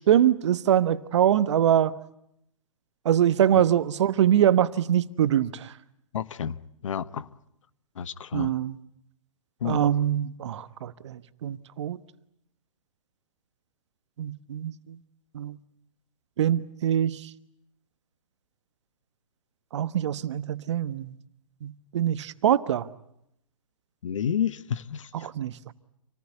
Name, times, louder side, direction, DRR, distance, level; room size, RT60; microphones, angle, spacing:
voice 1, 0.0-2.0 3.0-5.7 8.3-8.8 9.6-12.0 14.2-15.0 15.3-15.6 16.4-17.3 19.7-21.2 21.6-22.9 25.2-25.5, right 10 dB, 55° right, 1.2 m, -24 dB
voice 2, 6.1-6.6 6.8-7.3 8.0-8.5 9.6-9.9 24.0-25.3, left 8 dB, 65° left, 1.2 m, -30 dB
27.5 x 19.0 x 9.5 m
hypercardioid pair, 125°, 17 cm